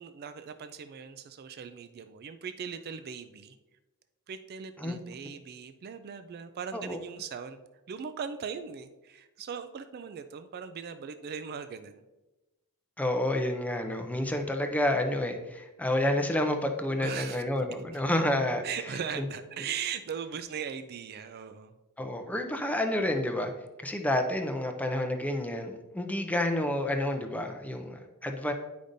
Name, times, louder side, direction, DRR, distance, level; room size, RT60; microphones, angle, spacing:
voice 1, 0.0-3.6 4.3-7.6 7.9-12.0 17.0-17.4 18.6-21.7, right 7 dB, 45° right, 9 dB, 0.3 m, -39 dB
voice 2, 13.0-18.6 19.2-19.3 22.0-23.5 23.8-28.5, left 1 dB, 5° left, 5 dB, 0.5 m, -29 dB
9.9 x 5.1 x 2.6 m, 1.1 s
head